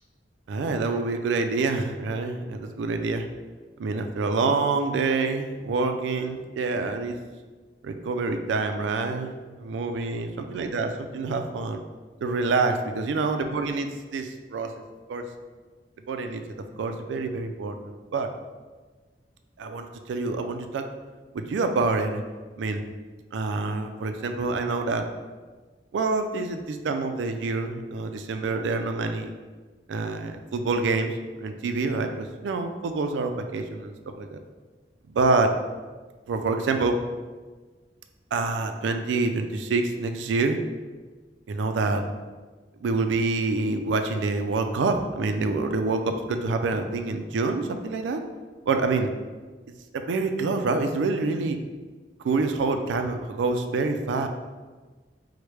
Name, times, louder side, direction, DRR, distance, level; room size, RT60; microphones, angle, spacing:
voice 1, 0.5-3.2 3.8-7.2 7.8-11.8 12.2-14.7 15.1-15.3 16.1-16.4 16.8-18.3 19.6-20.9 21.3-22.2 22.6-22.8 23.3-25.1 25.9-29.3 29.9-31.1 31.4-34.4 35.1-35.5 36.3-37.0 38.3-40.6 41.5-42.0 42.8-48.2 48.7-49.1 49.9-51.6 52.2-54.3, right 3 dB, 90° right, 6 dB, 0.3 m, -26 dB
4.6 x 2.1 x 3.2 m, 1.4 s
head